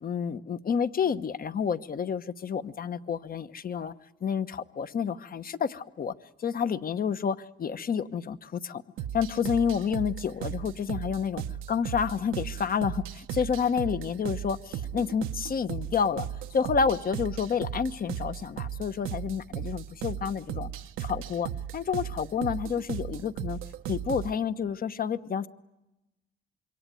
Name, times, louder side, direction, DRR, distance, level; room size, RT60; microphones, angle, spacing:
voice 1, 0.0-3.9 4.2-6.1 6.4-8.8 9.1-20.7 21.0-23.6 23.9-25.5, left 7 dB, 45° left, 1.1 m, -29 dB
sound 1, 9.0-24.3, right 10 dB, 90° right, 1.0 m, -36 dB
26.5 x 23.5 x 9.2 m
cardioid pair, 90°, 20 cm